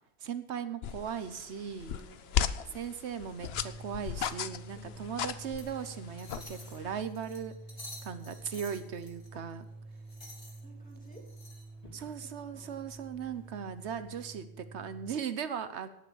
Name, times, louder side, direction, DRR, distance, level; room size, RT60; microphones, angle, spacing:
voice 1, 0.2-2.0 2.5-7.5 8.0-9.6 11.9-15.9, right 7 dB, 90° right, 11 dB, 1.2 m, -38 dB
sound 1, 0.8-7.0, left 9 dB, 70° left, 0.9 m, -37 dB
voice 2, 1.8-2.8 4.6-5.1 9.3-9.6 10.6-11.3 12.2-12.9 15.7-15.9, right 1 dB, 5° left, 0 dB, 2.8 m, -57 dB
sound 2, 3.4-15.2, right 2 dB, 15° right, 0.4 m, -49 dB
sound 3, 5.4-14.2, left 1 dB, 35° left, 3.2 m, -53 dB
18.5 x 6.6 x 7.0 m, 0.77 s
omnidirectional pair, 1.1 m